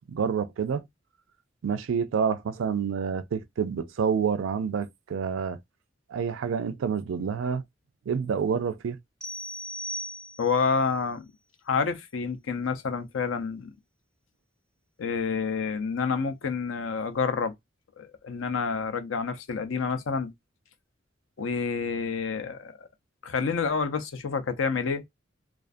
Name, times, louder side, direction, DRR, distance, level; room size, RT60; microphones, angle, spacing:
voice 1, 0.1-0.9 1.6-5.6 6.1-7.6 8.1-9.0, right 6 dB, 75° right, 0.4 m, -28 dB
sound 1, 9.2-10.7, equal, 5° left, 0.4 m, -37 dB
voice 2, 10.4-11.3 11.7-13.7 15.0-17.5 18.0-20.3 21.4-22.9 23.2-25.0, left 5 dB, 80° left, 0.5 m, -28 dB
2.4 x 2.4 x 2.5 m
head